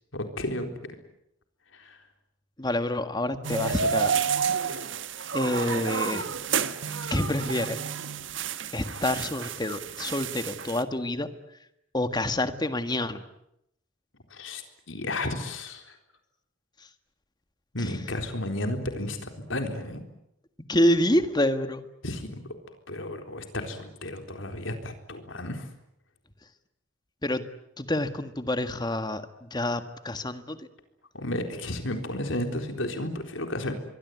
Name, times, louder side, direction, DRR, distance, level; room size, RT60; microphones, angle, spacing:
voice 1, 0.1-0.7 1.7-2.0 14.3-14.6 14.9-16.0 17.7-20.0 22.0-22.4 22.9-25.7 31.1-33.7, left 1 dB, 75° left, 5 dB, 4.0 m, -33 dB
voice 2, 2.6-4.2 5.3-6.3 7.1-7.8 8.7-11.3 11.9-13.2 20.7-21.8 27.2-27.4 27.8-30.7, left 1 dB, 20° left, 9 dB, 1.7 m, -27 dB
sound 1, 3.4-10.8, right 6 dB, 70° right, 1.4 m, -30 dB
25.5 x 22.5 x 9.4 m, 0.80 s
head